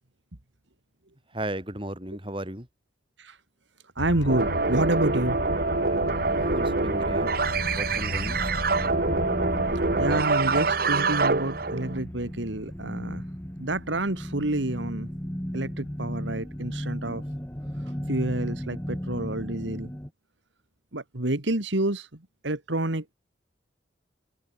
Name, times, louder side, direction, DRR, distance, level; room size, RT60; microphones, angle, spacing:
voice 1, 1.3-2.7 6.4-7.3 7.7-8.4, right 1 dB, 25° right, 4.7 m, -34 dB
sound 1, 4.0-10.2, left 2 dB, 85° left, 1.3 m, -34 dB
voice 2, 4.0-5.4 9.9-13.2 13.6-15.1 15.5-17.2 18.1-19.9 20.9-22.1 22.4-23.1, right 1 dB, 75° right, 2.3 m, -28 dB
sound 2, 4.3-12.0, right 3 dB, 50° right, 1.0 m, -25 dB
sound 3, 7.4-20.1, equal, 10° left, 1.6 m, -36 dB
head